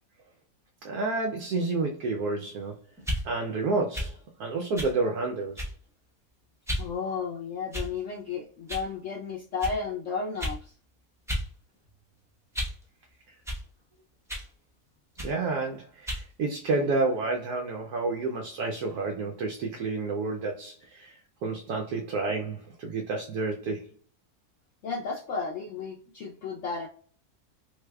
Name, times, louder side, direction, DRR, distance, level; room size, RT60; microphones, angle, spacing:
voice 1, 0.8-2.7 3.2-5.6 15.2-23.9, right 3 dB, 90° right, 1.2 m, -30 dB
sound 1, 3.0-3.2 3.9-4.1 4.8-5.0 5.6-5.9 6.7-6.9 7.7-8.1 8.7-8.9 9.6-9.8 10.4-10.6 11.3-11.5 11.8-12.8 13.5-13.6 14.3-14.5 15.2-15.4 16.1-16.3, equal, 5° right, 0.4 m, -33 dB
voice 2, 6.8-10.7 24.8-26.9, left 5 dB, 65° left, 0.8 m, -33 dB
3.4 x 3.2 x 2.2 m
omnidirectional pair, 1.6 m